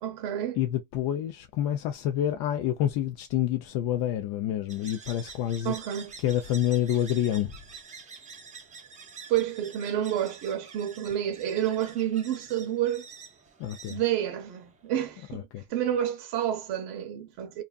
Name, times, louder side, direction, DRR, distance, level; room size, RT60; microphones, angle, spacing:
voice 1, 0.0-0.6 5.6-6.1 9.3-13.1 13.9-17.6, right 11 dB, 55° right, 0.7 m, -29 dB
voice 2, 0.6-5.7 6.2-7.5 13.6-14.0 15.3-15.6, left 11 dB, 55° left, 0.5 m, -28 dB
sound 1, 4.7-14.9, right 5 dB, 15° right, 0.5 m, -47 dB
2.6 x 2.3 x 2.3 m
cardioid pair, 130°, 49 cm